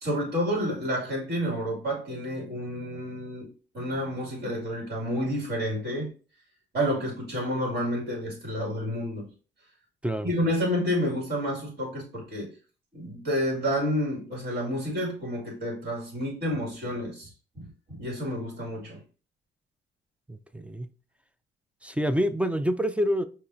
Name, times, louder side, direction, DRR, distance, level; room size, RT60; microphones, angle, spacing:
voice 1, 0.0-3.5 3.7-6.1 6.7-9.3 10.2-12.5 12.9-17.3 17.5-19.0, equal, 50° right, 2.3 m, -29 dB
voice 2, 20.3-20.9 21.8-23.2, equal, 5° right, 0.4 m, -27 dB
5.4 x 2.9 x 2.6 m
cardioid pair, 90°, 20 cm